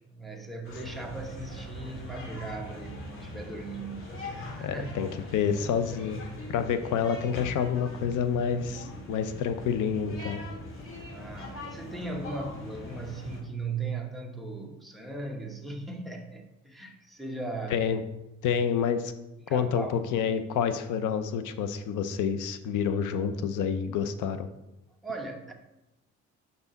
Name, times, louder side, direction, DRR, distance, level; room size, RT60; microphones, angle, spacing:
voice 1, 0.1-4.9 11.1-17.8 19.4-20.0 25.0-25.5, right 3 dB, ahead, 0 dB, 1.0 m, -38 dB
sound 1, 0.6-13.4, left 1 dB, 45° left, 1.9 m, -41 dB
voice 2, 4.6-6.2 6.5-10.4 17.7-18.0 18.4-19.1 19.5-24.5, left 7 dB, 85° left, 10 dB, 0.7 m, -28 dB
5.9 x 5.5 x 3.9 m, 0.93 s
cardioid pair, 90°, 30 cm